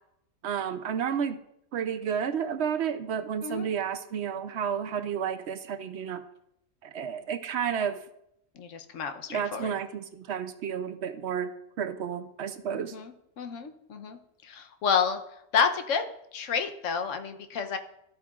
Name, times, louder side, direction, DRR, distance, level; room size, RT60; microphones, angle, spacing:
voice 1, 0.4-1.4 1.7-6.2 6.8-8.0 9.3-12.9, right 7 dB, 65° right, 10 dB, 0.8 m, -31 dB
voice 2, 8.6-9.7 12.8-15.2 15.5-16.0 16.3-17.8, left 6 dB, 80° left, 7 dB, 1.1 m, -30 dB
13.5 x 8.3 x 2.4 m, 0.77 s
omnidirectional pair, 1.3 m